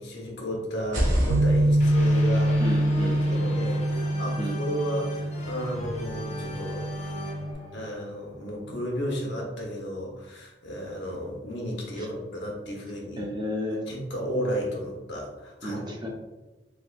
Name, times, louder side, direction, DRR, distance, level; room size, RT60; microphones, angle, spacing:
voice 1, 0.0-2.6 3.0-7.1 7.7-13.2 13.9-16.1, equal, 80° left, -2 dB, 1.0 m, -33 dB
sound 1, 0.8-4.6, equal, 45° right, 1.1 m, -31 dB
Bass guitar, 1.3-7.5, right 1 dB, 70° right, 0.4 m, -25 dB
sound 2, 1.8-8.8, equal, 40° left, 0.6 m, -39 dB
voice 2, 2.6-3.5 4.4-4.6 12.0-12.1 13.2-13.9 15.6-16.1, equal, 25° right, 0 dB, 0.6 m, -33 dB
3.4 x 3.3 x 2.4 m, 1.1 s
head